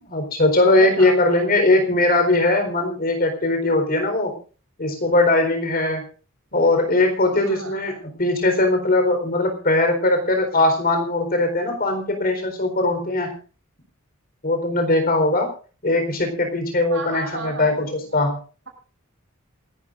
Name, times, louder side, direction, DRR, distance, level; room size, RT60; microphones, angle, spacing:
voice 1, 0.0-4.3 4.8-6.0 6.5-13.3 14.4-15.5 15.8-18.4, left 2 dB, 45° left, 5 dB, 4.2 m, -20 dB
voice 2, 0.8-1.4 7.3-7.8 16.9-18.3, right 3 dB, 60° right, 2 dB, 6.9 m, -34 dB
27.5 x 12.0 x 2.6 m, 0.38 s
head